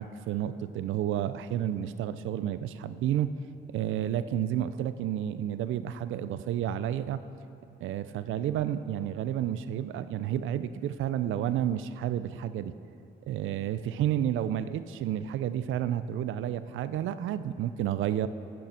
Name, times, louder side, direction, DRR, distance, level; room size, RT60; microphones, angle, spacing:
voice 1, 0.0-3.3 3.7-7.2 7.8-12.7 13.3-18.3, right 11 dB, 75° right, 13 dB, 0.4 m, -31 dB
10.0 x 6.7 x 5.7 m, 2.8 s
cardioid pair, 145°, 20 cm